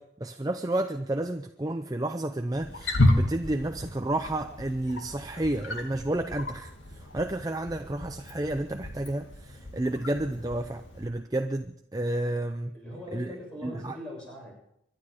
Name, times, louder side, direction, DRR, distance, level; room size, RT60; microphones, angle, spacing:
voice 1, 0.0-12.8 13.1-13.3 13.6-14.0, right 1 dB, 20° right, 7 dB, 0.5 m, -31 dB
Wild animals, 2.5-11.1, left 1 dB, 80° left, 2.3 m, -32 dB
voice 2, 12.7-14.5, left 1 dB, 5° left, -3 dB, 7.1 m, -41 dB
25.5 x 11.0 x 5.0 m, 0.77 s
head